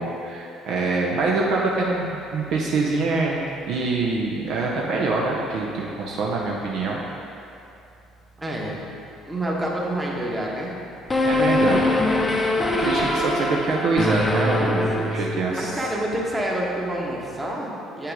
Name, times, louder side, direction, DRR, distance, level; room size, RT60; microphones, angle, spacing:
voice 1, 0.0-7.0 11.2-11.9 12.6-15.7, right 3 dB, 55° right, -3 dB, 0.7 m, -24 dB
voice 2, 8.4-8.8 9.2-10.7 15.0-18.1, right 1 dB, 15° right, -3 dB, 1.3 m, -28 dB
sound 1, 11.1-15.7, left 2 dB, 15° left, 0.7 m, -23 dB
8.2 x 5.6 x 3.6 m, 2.7 s
figure-of-eight pair, 55°, 0 cm